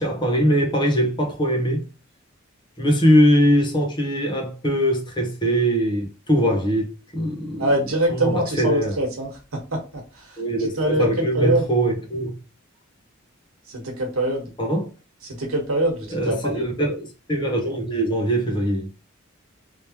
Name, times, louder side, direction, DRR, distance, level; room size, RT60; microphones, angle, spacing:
voice 1, 0.0-1.8 2.8-7.7 8.1-9.0 10.4-12.4 14.6-14.9 16.1-18.9, equal, 20° left, 0.9 m, -21 dB
voice 2, 7.6-11.6 13.7-14.5 15.2-16.6, right 1 dB, 85° right, 1.3 m, -24 dB
3.3 x 3.1 x 2.9 m
head